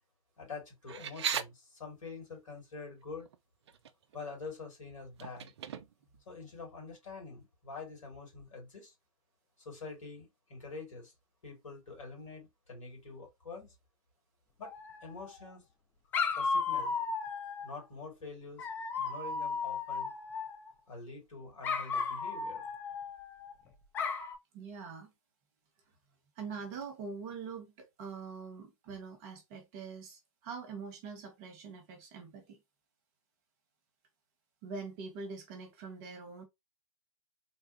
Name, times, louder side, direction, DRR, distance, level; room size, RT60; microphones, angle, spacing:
voice 1, 0.4-3.3 4.1-5.5 6.3-8.9 9.6-11.1 11.4-13.7 14.6-14.7 15.0-15.6 16.4-16.9 17.6-18.7 19.0-20.1 20.9-22.7, left 4 dB, 70° left, 2.4 m, -46 dB
sound 1, 0.9-1.4 3.2-3.3 3.7-4.2 5.2-6.1, right 7 dB, 50° right, 0.4 m, -36 dB
Dog, 14.6-15.4 16.1-17.8 18.6-20.7 21.6-23.5 23.9-24.4, left 5 dB, 10° left, 0.4 m, -35 dB
voice 2, 24.5-25.1 26.4-32.6 34.6-36.4, right 5 dB, 30° right, 1.1 m, -44 dB
3.4 x 2.4 x 2.7 m
figure-of-eight pair, 125°, 18 cm